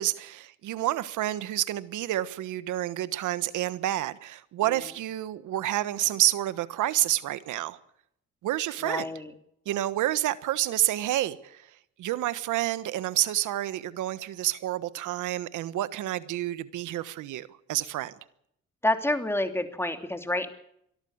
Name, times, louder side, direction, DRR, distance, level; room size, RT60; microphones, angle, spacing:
voice 1, 0.0-7.8 8.4-9.1 9.7-11.6 12.0-18.1, right 14 dB, 85° right, 1.3 m, -29 dB
voice 2, 8.8-9.3 18.8-20.5, left 1 dB, 10° left, 3.0 m, -28 dB
24.0 x 13.5 x 8.0 m
cardioid pair, 90°, 30 cm